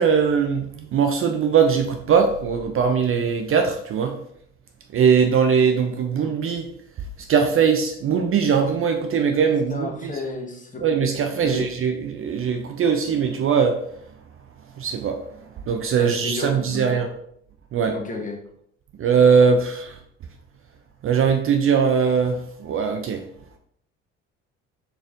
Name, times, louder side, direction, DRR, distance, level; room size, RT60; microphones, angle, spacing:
voice 1, 0.0-4.2 4.9-6.7 7.3-10.1 10.8-13.8 14.8-15.2 15.7-17.1 17.7-17.9 19.0-20.0 21.0-23.2, right 6 dB, 40° right, 0.5 m, -20 dB
voice 2, 9.7-10.8 11.4-11.7 16.0-16.9 17.9-18.4, left 2 dB, 20° left, 1.0 m, -32 dB
4.3 x 3.4 x 2.5 m
hypercardioid pair, 60°, 36 cm